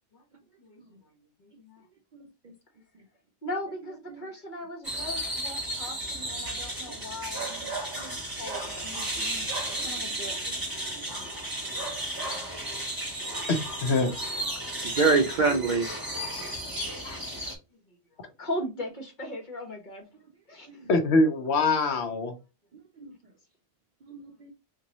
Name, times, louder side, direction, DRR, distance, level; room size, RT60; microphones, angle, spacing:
voice 1, 0.6-1.8 3.4-9.5 9.8-10.4 14.5-15.0 16.6-16.8 17.3-17.4 17.7-20.1 20.5-20.9, left 1 dB, 40° left, 1.2 m, -39 dB
sound 1, 4.8-17.5, right 1 dB, 20° right, 1.1 m, -34 dB
voice 2, 13.5-14.1 17.0-17.2 20.9-22.3, left 2 dB, 70° left, 0.9 m, -24 dB
voice 3, 14.8-15.9 20.7-20.9 23.0-23.1 24.1-24.5, right 4 dB, 60° right, 0.5 m, -26 dB
3.8 x 2.6 x 2.9 m
omnidirectional pair, 1.2 m